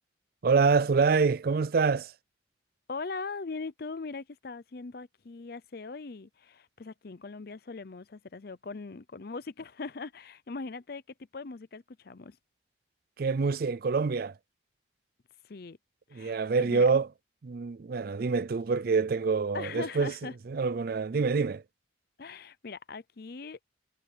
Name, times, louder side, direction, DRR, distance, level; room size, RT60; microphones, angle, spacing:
voice 1, 0.4-2.1 13.2-14.3 16.1-17.1 17.4-20.1 20.5-21.6, right 4 dB, 55° right, 0.4 m, -26 dB
voice 2, 2.9-11.0 11.3-12.4 15.4-15.8 16.1-16.9 19.5-20.3 22.2-23.6, left 4 dB, 55° left, 0.6 m, -40 dB
head